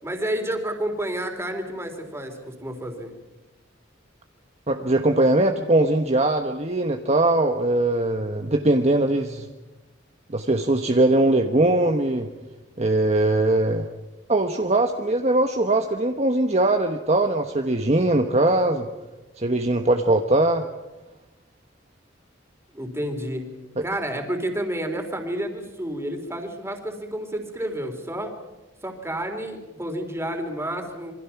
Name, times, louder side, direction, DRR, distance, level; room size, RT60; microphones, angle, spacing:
voice 1, 0.0-3.1 22.7-23.4 23.8-28.3 28.8-31.1, right 1 dB, 15° right, 4 dB, 3.7 m, -30 dB
voice 2, 4.7-9.5 10.3-12.3 12.8-13.9 14.3-18.9 19.4-20.6 23.8-23.9, right 2 dB, 35° right, 4 dB, 1.2 m, -21 dB
27.5 x 24.0 x 5.9 m, 1.1 s
head